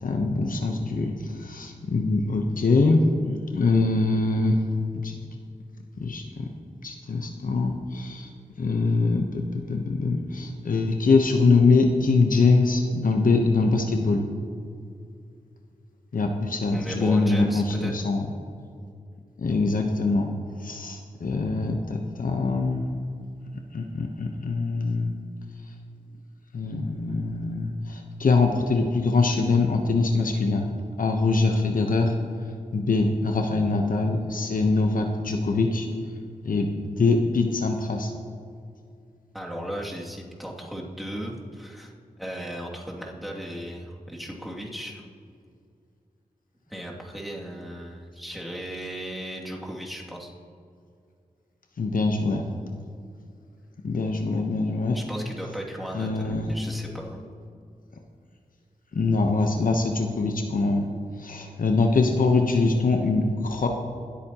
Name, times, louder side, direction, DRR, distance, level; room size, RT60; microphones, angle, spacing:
voice 1, 0.0-4.6 5.0-5.1 6.0-6.5 6.8-8.3 8.6-14.2 16.1-18.3 19.4-20.3 20.6-22.9 23.7-25.1 26.5-30.7 31.0-32.1 32.7-35.9 36.4-38.1 51.8-52.5 53.8-55.0 55.9-56.5 58.9-60.9 61.2-63.7, left 3 dB, 70° left, 3 dB, 1.0 m, -23 dB
voice 2, 16.7-17.9 39.3-41.9 42.2-45.0 46.7-50.3 54.9-57.3, equal, ahead, -3 dB, 2.5 m, -36 dB
21.0 x 8.4 x 3.0 m, 2.4 s
cardioid pair, 55°, 15 cm